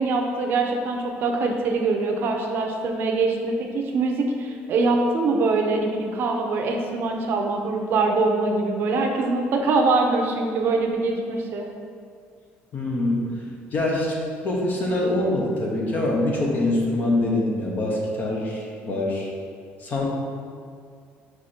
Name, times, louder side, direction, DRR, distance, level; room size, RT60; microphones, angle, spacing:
voice 1, 0.0-11.7, right 3 dB, 55° right, 2 dB, 0.7 m, -23 dB
voice 2, 12.7-13.3 13.7-14.1 14.4-19.3 19.8-20.1, left 2 dB, 40° left, -2 dB, 1.1 m, -24 dB
4.8 x 4.8 x 4.3 m, 2.2 s
cardioid pair, 150°, 5 cm